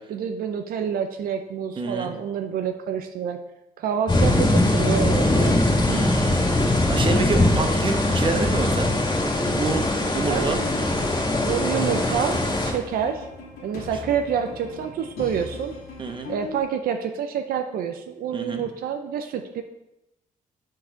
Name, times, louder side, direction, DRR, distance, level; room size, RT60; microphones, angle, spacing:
voice 1, 0.1-3.4 3.8-5.6 10.3-10.5 11.5-13.3 13.6-15.8 16.3-19.6, right 8 dB, 80° right, 6 dB, 0.6 m, -27 dB
voice 2, 1.8-2.1 5.9-8.9 9.6-9.8 10.1-10.6 16.0-16.3 18.3-18.6, right 3 dB, 35° right, 4 dB, 1.2 m, -28 dB
sound 1, 4.1-12.7, left 1 dB, 30° left, 2.2 m, -21 dB
sound 2, 5.2-16.6, left 3 dB, 85° left, 2.1 m, -38 dB
7.1 x 4.7 x 6.2 m, 0.93 s
cardioid pair, 115°, 15 cm